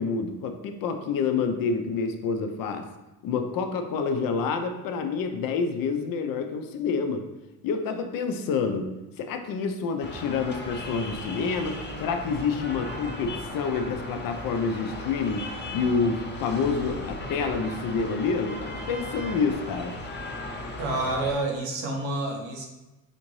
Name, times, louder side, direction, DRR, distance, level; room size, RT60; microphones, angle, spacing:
voice 1, 0.0-2.9 3.2-7.3 7.6-8.9 9.2-19.9, left 5 dB, 60° left, 6 dB, 0.6 m, -28 dB
sound 1, 10.0-21.3, left 1 dB, 25° left, 0.8 m, -37 dB
voice 2, 20.8-22.6, right 2 dB, 85° right, 0 dB, 1.0 m, -28 dB
4.3 x 2.6 x 3.1 m, 1.1 s
supercardioid pair, 75°, 40 cm